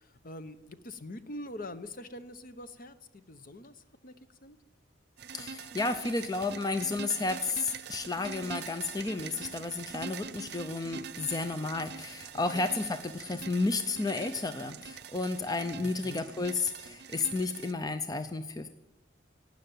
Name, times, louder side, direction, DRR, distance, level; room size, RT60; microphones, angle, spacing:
voice 1, 0.0-4.2 4.4-4.6 12.5-12.7 15.8-16.3, left 1 dB, 50° left, 12 dB, 0.8 m, -44 dB
sound 1, 5.2-17.7, right 6 dB, 60° right, 0.6 m, -44 dB
voice 2, 5.3-18.7, left 3 dB, 20° left, 9 dB, 0.6 m, -32 dB
12.5 x 9.2 x 9.1 m, 0.99 s
head